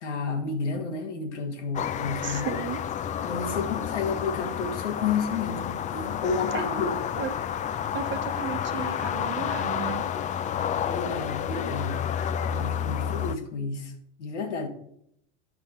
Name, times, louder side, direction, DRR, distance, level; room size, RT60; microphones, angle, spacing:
voice 1, 0.0-2.6 3.2-7.0 10.9-12.0 12.4-13.9 14.2-14.7, left 4 dB, 85° left, 1.8 m, -31 dB
sound 1, 1.7-13.4, left 9 dB, 20° left, 0.4 m, -30 dB
voice 2, 2.2-2.8 6.5-6.9 7.2-7.4 7.9-10.1, right 7 dB, 35° right, 1.0 m, -34 dB
8.9 x 6.0 x 4.3 m
hypercardioid pair, 110°, 35 cm